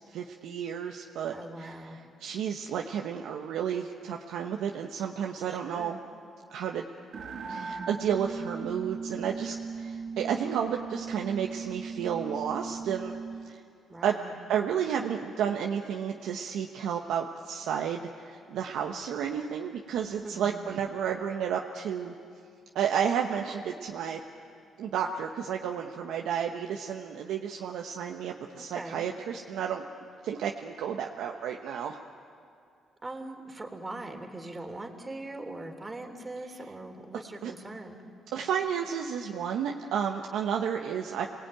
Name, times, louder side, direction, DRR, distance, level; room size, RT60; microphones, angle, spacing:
voice 1, 0.1-6.0 6.5-6.8 7.5-13.1 13.5-13.6 14.0-14.2 14.5-22.1 22.7-24.2 24.8-29.8 30.2-32.0 37.4-37.5 38.3-41.3, right 8 dB, 85° right, 2 dB, 1.2 m, -32 dB
voice 2, 1.3-2.0 5.5-6.0 13.9-14.4 20.2-20.6 28.6-29.1 33.0-38.0, right 2 dB, 20° right, 3 dB, 3.4 m, -41 dB
sound 1, 7.1-13.5, right 4 dB, 60° right, 1.9 m, -38 dB
28.0 x 19.5 x 9.1 m, 2.4 s
cardioid pair, 90°, 0 cm